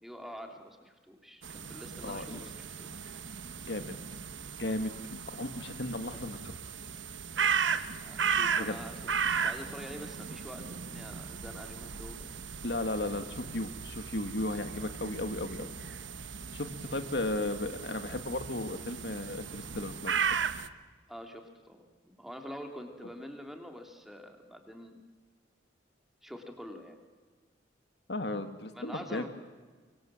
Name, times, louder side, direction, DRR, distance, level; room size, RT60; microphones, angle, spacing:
voice 1, 0.0-3.1 8.0-9.1 9.4-12.3 16.9-17.1 21.1-21.8 22.1-24.9 26.2-27.0 28.7-29.3, equal, ahead, 4 dB, 2.8 m, -46 dB
sound 1, 1.4-20.7, right 6 dB, 85° right, 1.1 m, -36 dB
voice 2, 2.0-2.4 3.7-3.9 4.6-4.9 5.3-6.5 8.6-8.8 12.6-15.7 16.5-20.4 28.1-29.3, left 2 dB, 65° left, 8 dB, 1.7 m, -35 dB
24.5 x 24.0 x 7.6 m, 1.4 s
head